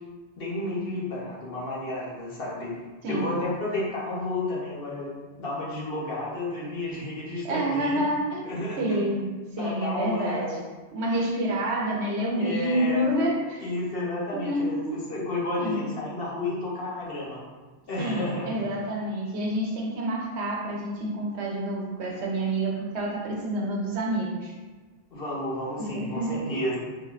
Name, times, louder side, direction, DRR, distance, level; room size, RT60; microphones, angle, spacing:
voice 1, 0.4-2.7 3.1-8.0 8.4-8.8 9.6-10.5 12.4-13.0 13.6-17.4 17.9-18.6 25.1-26.8, left 2 dB, 65° left, -5 dB, 1.1 m, -31 dB
voice 2, 3.0-3.3 7.4-10.6 10.9-13.7 14.3-15.1 15.6-15.9 18.0-24.5 25.8-26.6, right 1 dB, 80° right, -1 dB, 1.0 m, -28 dB
3.5 x 3.2 x 2.4 m, 1.3 s
omnidirectional pair, 1.1 m